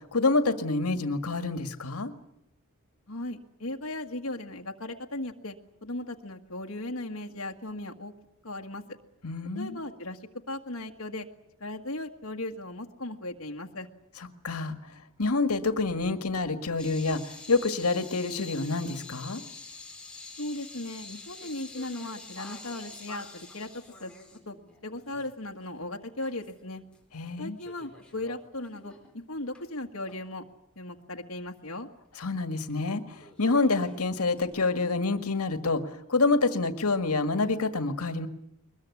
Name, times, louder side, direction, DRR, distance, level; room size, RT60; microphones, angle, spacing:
voice 1, 0.0-2.1 9.2-9.8 14.4-14.8 15.2-17.2 17.5-19.4 27.1-27.6 32.2-35.8 36.1-38.3, left 3 dB, 85° left, 10 dB, 1.8 m, -27 dB
voice 2, 3.1-5.6 5.8-8.1 8.4-8.8 9.6-10.2 10.5-11.3 11.6-13.9 20.4-24.1 24.5-24.6 24.8-26.8 27.4-30.4 30.8-31.9, left 2 dB, 65° left, 2 dB, 1.8 m, -37 dB
sound 1, 16.8-25.4 25.6-25.7 26.2-27.0 27.2-29.6 30.1-30.2 32.7-32.8 33.2-34.4, left 3 dB, 5° left, 4.3 m, -47 dB
22.5 x 21.5 x 9.7 m, 0.74 s
head